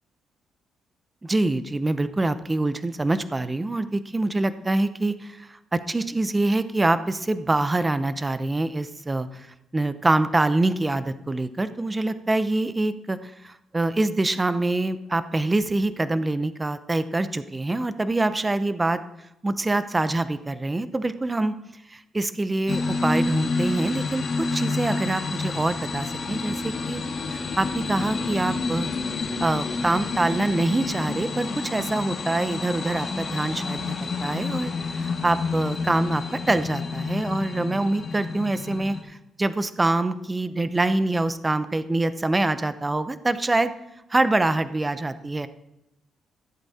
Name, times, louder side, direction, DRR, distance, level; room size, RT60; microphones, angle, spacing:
voice 1, 1.2-9.5 9.7-19.0 19.4-21.5 21.9-24.2 24.5-27.0 27.3-28.9 29.4-33.9 34.2-43.7 44.1-45.5, right 2 dB, 20° right, 13 dB, 0.7 m, -25 dB
sound 1, 22.7-39.0, left 4 dB, 50° left, 1.9 m, -29 dB
14.5 x 8.0 x 4.2 m, 0.88 s
cardioid pair, 95°, 0 cm